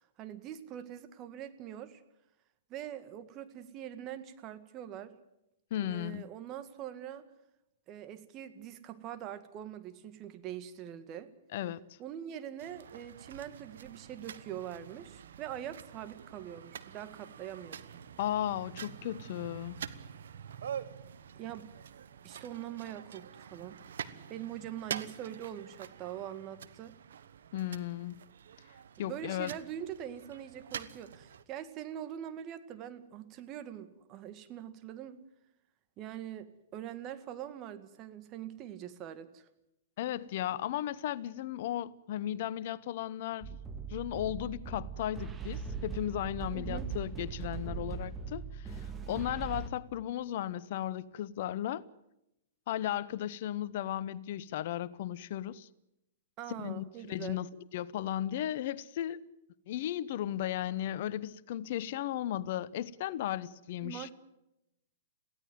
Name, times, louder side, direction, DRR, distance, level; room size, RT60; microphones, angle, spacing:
voice 1, 0.0-2.0 2.7-5.2 5.8-7.3 7.9-11.3 12.0-18.0 21.4-21.7 22.2-23.8 24.3-27.0 29.0-35.2 36.0-39.5 46.5-46.9 56.4-57.4 63.8-64.1, right 10 dB, 35° right, 1.8 m, -43 dB
voice 2, 5.7-6.3 11.5-11.8 18.2-19.8 27.5-28.2 29.0-29.5 40.0-43.6 43.9-51.9 52.7-55.7 56.6-59.3 59.7-64.1, left 12 dB, 55° left, 0.8 m, -35 dB
sound 1, 12.6-31.4, right 8 dB, 70° right, 1.2 m, -46 dB
sound 2, 43.4-49.7, right 5 dB, 15° right, 1.9 m, -40 dB
22.5 x 16.5 x 9.3 m
hypercardioid pair, 110°, 0 cm